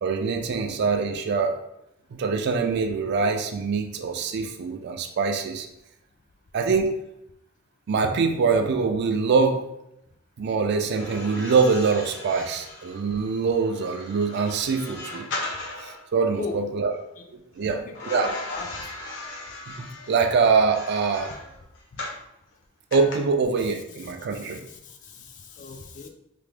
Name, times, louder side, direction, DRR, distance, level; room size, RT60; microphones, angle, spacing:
voice 1, 0.0-1.6 2.1-5.7 6.5-7.0 7.9-9.6 10.4-15.3 15.8-16.9 17.6-18.3 19.7-21.3 22.9-24.6, right 4 dB, 55° right, 5 dB, 0.3 m, -24 dB
sound 1, 10.9-16.0 17.9-22.2 22.9-23.1, left 2 dB, 60° left, 0.7 m, -38 dB
voice 2, 17.6-18.7 25.6-26.1, left 4 dB, 40° left, 4 dB, 0.3 m, -35 dB
3.4 x 2.0 x 3.2 m, 0.82 s
head